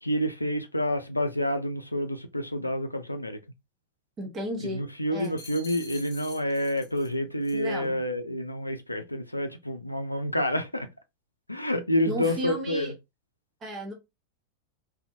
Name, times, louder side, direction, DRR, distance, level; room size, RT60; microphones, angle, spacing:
voice 1, 0.0-3.4 4.7-10.9 11.5-12.9, left 1 dB, 85° left, 0.4 m, -28 dB
voice 2, 4.2-4.8 5.1-5.4 7.5-8.0 12.1-12.9 13.6-13.9, equal, 25° right, 0.9 m, -34 dB
sound 1, 5.2-7.1 7.4-7.7, left 4 dB, 40° left, 1.0 m, -47 dB
2.6 x 2.4 x 2.5 m
figure-of-eight pair, 90°, 0 cm